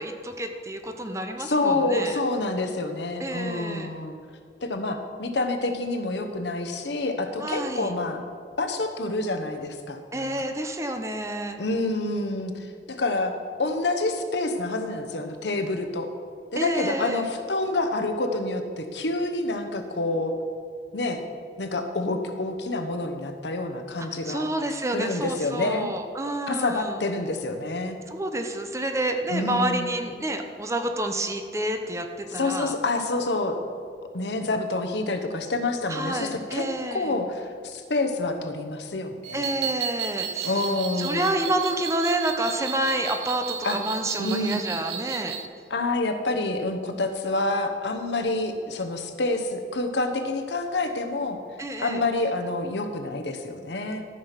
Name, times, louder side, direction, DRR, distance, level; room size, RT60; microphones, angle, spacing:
voice 1, 0.0-2.2 3.2-3.9 7.4-7.9 10.1-11.6 16.6-17.3 24.0-27.0 28.1-32.7 35.9-37.1 39.3-40.6 41.0-45.4 51.6-52.0, right 1 dB, 15° right, 6 dB, 0.7 m, -29 dB
voice 2, 1.4-4.2 4.6-8.2 8.6-10.3 11.6-16.1 16.5-20.3 20.9-21.2 21.6-24.5 24.9-25.9 26.5-28.0 29.3-29.9 32.3-33.6 34.1-36.6 36.9-39.5 40.4-41.4 43.6-43.8 44.2-44.6 45.7-51.4 51.8-54.0, left 2 dB, 80° left, 6 dB, 1.0 m, -28 dB
sound 1, 39.2-45.5, right 8 dB, 80° right, 0.7 m, -33 dB
13.0 x 5.9 x 5.8 m, 2.2 s
head